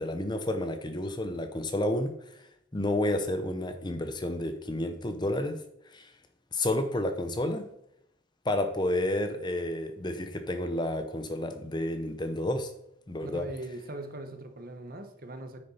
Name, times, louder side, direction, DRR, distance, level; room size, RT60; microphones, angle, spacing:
voice 1, 0.0-2.4 2.7-5.6 5.9-6.1 6.5-7.6 8.4-12.7 13.1-13.5, left 1 dB, 20° left, 8 dB, 0.7 m, -30 dB
voice 2, 13.2-15.6, right 1 dB, 45° right, 7 dB, 1.0 m, -41 dB
9.6 x 6.5 x 4.3 m, 0.76 s
head